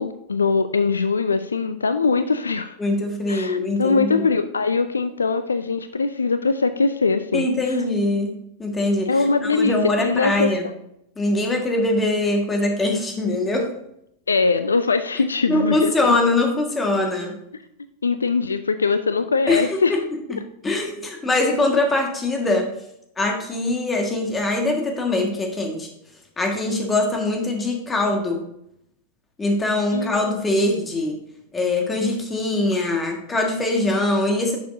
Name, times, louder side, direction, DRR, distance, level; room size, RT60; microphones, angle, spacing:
voice 1, 0.0-2.8 3.3-7.8 9.1-10.5 14.3-16.2 18.0-20.0 29.9-30.4, left 4 dB, 75° left, 11 dB, 0.4 m, -22 dB
voice 2, 2.8-4.3 7.3-8.3 8.6-9.1 9.5-10.7 11.2-13.7 15.5-17.3 19.5-20.0 20.3-22.7 23.2-25.9 26.4-28.4 29.4-31.2 31.5-34.6, left 2 dB, 15° left, 2 dB, 1.7 m, -22 dB
10.5 x 6.8 x 2.7 m, 0.77 s
figure-of-eight pair, 90°, 0 cm